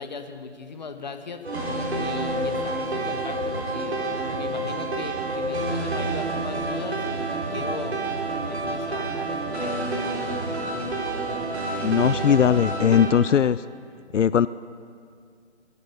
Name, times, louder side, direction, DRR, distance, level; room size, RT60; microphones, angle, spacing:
voice 1, 0.0-1.5 1.9-8.0 8.3-9.9, left 5 dB, 40° left, 8 dB, 1.1 m, -38 dB
sound 1, 1.4-13.1, right 2 dB, 60° right, 4.2 m, -28 dB
voice 2, 11.8-13.6 14.1-14.5, left 8 dB, 90° left, 17 dB, 0.5 m, -19 dB
23.0 x 11.5 x 5.6 m, 2.2 s
figure-of-eight pair, 160°, 35 cm